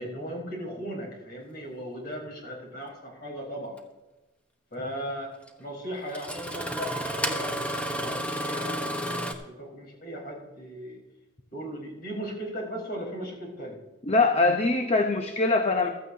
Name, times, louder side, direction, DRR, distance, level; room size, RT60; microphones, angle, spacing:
voice 1, 0.0-3.8 4.7-11.0 11.5-13.8, equal, 45° left, -1 dB, 4.5 m, -37 dB
Engine starting, 3.8-3.9 5.5-5.6 6.1-9.3, equal, 5° left, 1.0 m, -31 dB
voice 2, 14.1-15.9, left 3 dB, 30° left, 5 dB, 0.7 m, -23 dB
15.5 x 13.5 x 2.7 m, 1.1 s
head